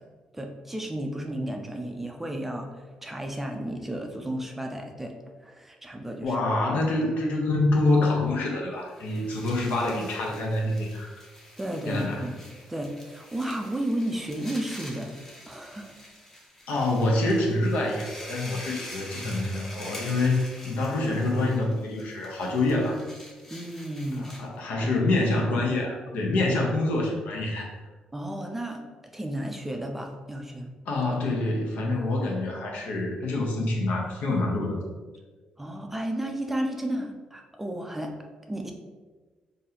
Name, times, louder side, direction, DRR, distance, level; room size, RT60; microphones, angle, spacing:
voice 1, 0.3-5.2 5.4-6.4 11.6-12.4 12.7-15.2 15.5-15.9 23.5-24.3 24.8-24.9 28.1-28.8 29.1-30.7 31.9-32.0 35.6-38.1 38.5-38.7, right 1 dB, 10° right, 3 dB, 0.4 m, -33 dB
voice 2, 6.2-11.1 11.9-12.3 16.7-23.0 24.2-27.7 30.9-34.8, left 2 dB, 85° left, -1 dB, 0.8 m, -26 dB
sound 1, 8.8-24.6, left 1 dB, 15° left, 0.7 m, -45 dB
4.0 x 2.7 x 2.8 m, 1.3 s
cardioid pair, 130°, 2 cm